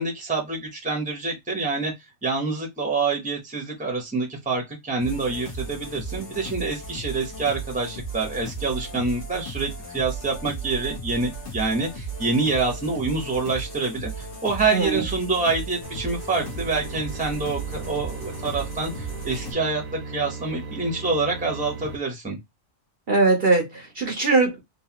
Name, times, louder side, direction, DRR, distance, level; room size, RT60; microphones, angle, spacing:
voice 1, 0.0-1.9 2.2-22.4, right 3 dB, 5° right, 0.9 m, -26 dB
sound 1, 5.0-19.5, right 3 dB, 55° left, 1.7 m, -35 dB
voice 2, 14.7-15.1 23.1-24.6, right 3 dB, 50° right, 1.0 m, -21 dB
sound 2, 15.8-22.0, right 4 dB, 85° right, 1.3 m, -37 dB
4.0 x 2.6 x 2.9 m
omnidirectional pair, 1.4 m